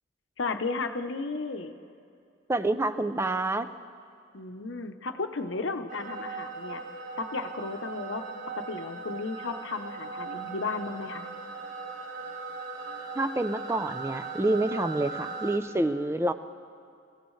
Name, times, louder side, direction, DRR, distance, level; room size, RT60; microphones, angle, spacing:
voice 1, 0.4-1.7 4.3-6.8 7.2-8.2 8.5-11.3, left 3 dB, 70° left, 7 dB, 0.8 m, -34 dB
voice 2, 2.5-3.7 13.2-16.3, right 2 dB, 15° right, 11 dB, 0.4 m, -27 dB
sound 1, 5.9-15.6, right 4 dB, 45° right, 1.4 m, -39 dB
27.5 x 16.0 x 3.2 m, 2.5 s
head